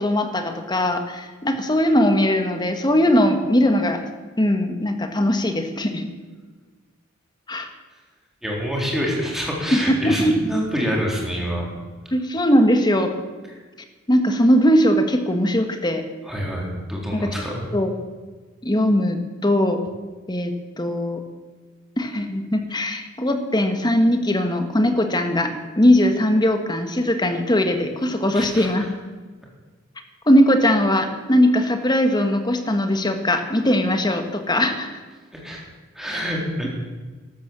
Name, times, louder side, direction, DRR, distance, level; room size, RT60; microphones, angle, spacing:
voice 1, 0.0-4.0 4.4-6.1 7.5-7.7 9.7-10.3 12.1-13.1 14.1-16.0 17.1-17.3 17.7-17.9 18.6-19.8 20.3-21.2 22.0-28.8 30.3-34.9, equal, 20° left, 6 dB, 1.6 m, -20 dB
voice 2, 8.4-11.7 16.2-17.6 28.3-28.9 35.3-35.6 36.0-36.7, equal, ahead, -2 dB, 3.9 m, -26 dB
13.0 x 12.5 x 7.5 m, 1.3 s
head